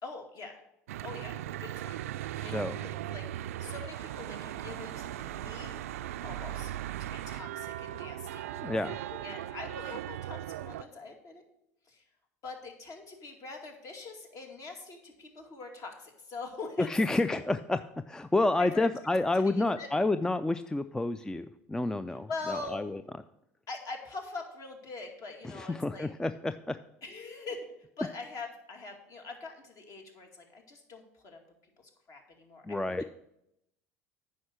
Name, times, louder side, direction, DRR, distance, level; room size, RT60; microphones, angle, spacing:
voice 1, 0.0-0.6 1.0-2.0 2.4-5.8 6.2-8.5 9.1-11.4 11.9-12.0 12.4-16.9 17.3-17.4 18.6-18.9 19.5-19.9 22.3-22.8 23.7-26.1 27.0-31.4 31.8-33.0, left 3 dB, 45° left, 3 dB, 2.2 m, -43 dB
Church bell / Traffic noise roadway noise, 0.9-10.8, right 13 dB, 80° right, 0.4 m, -38 dB
voice 2, 2.4-2.8 8.5-9.0 16.8-17.8 18.1-23.0 25.4-26.8 32.6-33.0, left 2 dB, 10° left, 12 dB, 0.3 m, -29 dB
9.5 x 5.7 x 6.4 m, 0.80 s
hypercardioid pair, 75°, 8 cm